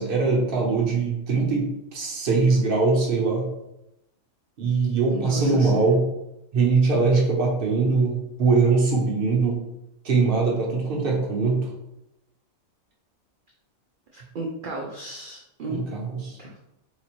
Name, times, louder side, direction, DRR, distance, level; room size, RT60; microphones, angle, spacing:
voice 1, 0.0-3.5 4.6-6.0 6.5-9.6 10.0-11.7 15.7-16.4, right 4 dB, 50° right, -1 dB, 0.9 m, -22 dB
voice 2, 5.1-5.9 14.1-15.8 16.4-16.6, right 2 dB, 75° right, 0 dB, 0.4 m, -34 dB
4.1 x 2.5 x 3.0 m, 0.88 s
omnidirectional pair, 1.4 m